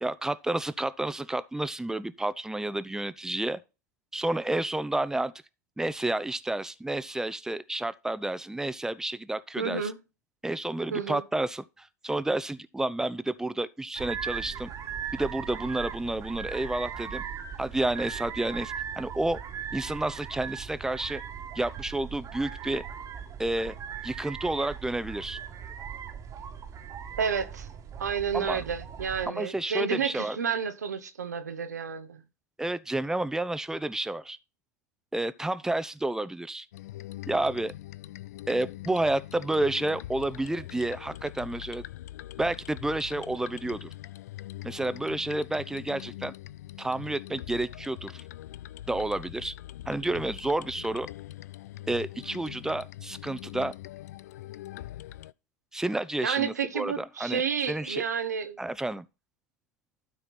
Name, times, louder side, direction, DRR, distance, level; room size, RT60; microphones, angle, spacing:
voice 1, 0.0-3.6 4.1-5.3 5.8-9.9 10.4-14.7 15.1-17.2 17.6-19.4 19.7-21.2 21.5-22.8 23.4-23.7 24.0-25.4 28.3-28.6 29.3-30.4 32.6-34.4 35.1-36.7 37.3-37.7 38.5-41.8 42.4-43.9 44.6-46.3 46.8-48.2 48.9-49.5 49.9-51.1 51.9-53.7 55.7-57.4 57.7-58.0 58.6-59.1, right 2 dB, 5° right, 0.7 m, -30 dB
voice 2, 9.6-10.0 10.9-11.2 27.2-27.7 28.0-32.2 56.2-58.6, right 6 dB, 85° right, 1.0 m, -30 dB
sound 1, 14.0-29.3, right 8 dB, 40° right, 1.5 m, -39 dB
sound 2, 36.7-55.3, left 15 dB, 75° left, 0.3 m, -43 dB
12.5 x 4.5 x 4.1 m
hypercardioid pair, 80°, 9 cm